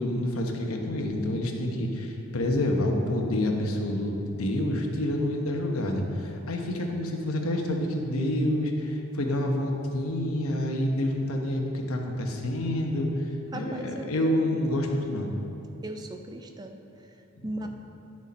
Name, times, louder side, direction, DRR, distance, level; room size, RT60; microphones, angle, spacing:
voice 1, 0.0-13.1 13.5-15.3 17.4-17.5, left 1 dB, 85° left, 2 dB, 1.0 m, -28 dB
voice 2, 13.5-14.5 15.8-17.7, right 1 dB, 20° right, 5 dB, 0.4 m, -38 dB
10.5 x 6.3 x 4.2 m, 2.9 s
head